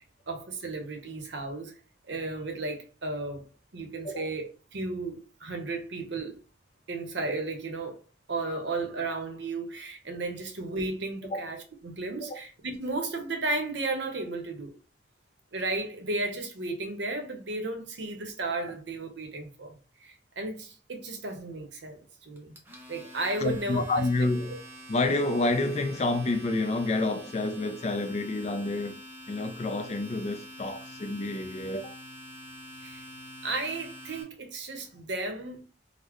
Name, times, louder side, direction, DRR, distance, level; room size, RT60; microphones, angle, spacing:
voice 1, 0.3-1.8 2.1-3.4 3.7-4.5 4.7-6.4 6.9-8.0 8.3-14.7 15.5-22.6 22.9-24.1 24.5-24.6 32.8-33.0 33.4-35.6, right 2 dB, 70° right, 0.8 m, -34 dB
Domestic sounds home sounds, 22.4-34.2, equal, 10° right, 0.6 m, -46 dB
voice 2, 23.4-24.6 24.9-29.0 29.3-32.0, left 2 dB, 35° left, 0.3 m, -28 dB
3.9 x 2.0 x 3.0 m
head